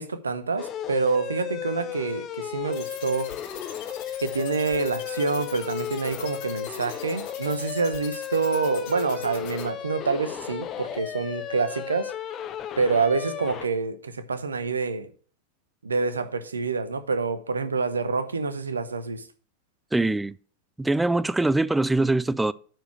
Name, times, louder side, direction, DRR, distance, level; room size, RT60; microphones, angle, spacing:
voice 1, 0.0-3.3 4.2-12.1 12.8-15.1 15.8-19.2, right 4 dB, 75° right, 0.9 m, -27 dB
sound 1, 0.6-13.7, left 10 dB, 30° left, 1.0 m, -35 dB
sound 2, 2.7-9.6, left 9 dB, 50° left, 2.1 m, -42 dB
voice 2, 19.9-20.3 20.8-22.5, right 2 dB, 5° right, 0.3 m, -23 dB
9.2 x 4.7 x 6.3 m
figure-of-eight pair, 90°, 0 cm